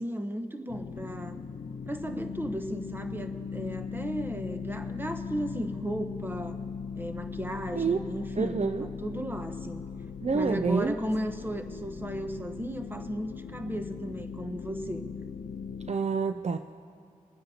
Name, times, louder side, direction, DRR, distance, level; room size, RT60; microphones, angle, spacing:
voice 1, 0.0-1.4 1.9-6.6 6.9-9.8 10.3-15.0, equal, 15° right, 6 dB, 0.9 m, -35 dB
sound 1, 0.7-15.9, left 5 dB, 85° left, 0.4 m, -39 dB
voice 2, 8.4-8.9 10.2-11.0 15.9-16.6, right 5 dB, 50° right, 8 dB, 0.4 m, -27 dB
26.5 x 9.6 x 2.8 m, 2.3 s
wide cardioid pair, 60°, 14 cm